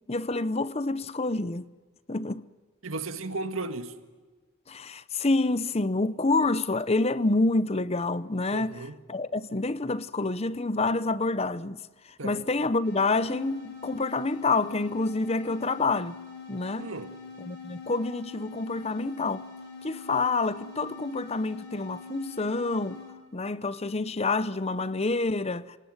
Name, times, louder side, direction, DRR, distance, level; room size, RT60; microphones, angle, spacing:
voice 1, 0.1-1.6 2.1-2.4 4.7-8.7 9.1-11.8 12.2-16.2 16.5-16.9 17.4-19.5 19.8-23.0 23.3-25.8, left 3 dB, 30° left, 0.7 m, -27 dB
voice 2, 2.8-3.9 8.5-9.0 12.2-12.4 16.8-17.1, right 3 dB, 90° right, 1.8 m, -35 dB
sound 1, 12.8-23.2, left 5 dB, 55° left, 5.0 m, -44 dB
27.5 x 18.5 x 9.5 m
head